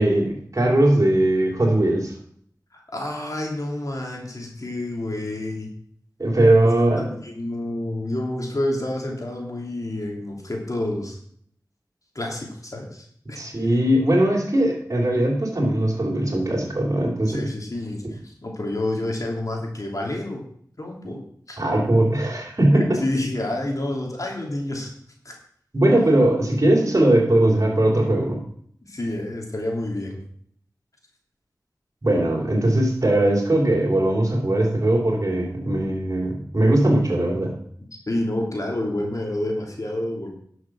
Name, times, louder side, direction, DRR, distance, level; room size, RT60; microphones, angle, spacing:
voice 1, 0.0-2.1 6.2-7.0 13.3-17.4 21.0-21.1 21.6-22.9 25.7-28.4 32.0-37.5, right 1 dB, 50° right, -2 dB, 3.2 m, -20 dB
voice 2, 2.7-5.7 6.6-11.2 12.1-13.4 17.3-20.4 20.8-21.2 21.5-21.6 22.7-24.9 25.2-25.3 28.8-30.2 38.1-40.3, left 1 dB, 55° left, 0 dB, 3.0 m, -29 dB
11.0 x 6.4 x 6.0 m, 0.63 s
wide cardioid pair, 40°, 7 cm